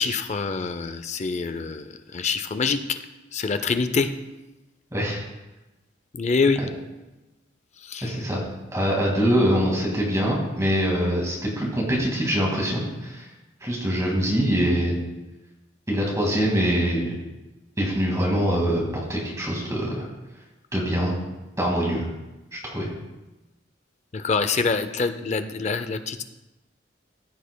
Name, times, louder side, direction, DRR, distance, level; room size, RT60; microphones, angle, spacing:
voice 1, 0.0-1.8 2.1-3.0 3.3-4.1 6.1-6.6 7.9-8.1 24.1-26.2, left 4 dB, 35° left, 10 dB, 0.4 m, -25 dB
voice 2, 4.9-5.2 8.0-8.4 8.7-13.3 13.6-15.0 15.9-17.2 17.8-20.1 20.7-21.1 21.6-22.0 22.5-22.9, equal, 15° right, -2 dB, 2.0 m, -24 dB
14.5 x 7.2 x 2.2 m, 1.0 s
head